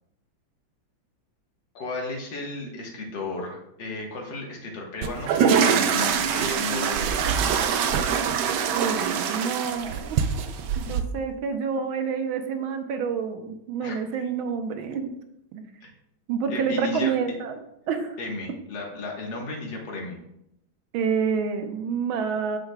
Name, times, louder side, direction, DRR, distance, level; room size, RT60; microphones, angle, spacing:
voice 1, 1.7-7.6 13.8-14.0 15.8-15.9 16.5-17.1 18.2-20.2, left 2 dB, 65° left, 0 dB, 2.0 m, -34 dB
sound 1, 5.0-11.0, right 7 dB, 70° right, 1.1 m, -24 dB
voice 2, 8.7-10.5 10.7-15.1 15.5-15.6 16.3-17.6 17.9-18.2 20.9-22.6, right 6 dB, 85° right, 6 dB, 1.6 m, -28 dB
8.7 x 6.9 x 2.2 m, 0.81 s
omnidirectional pair, 2.2 m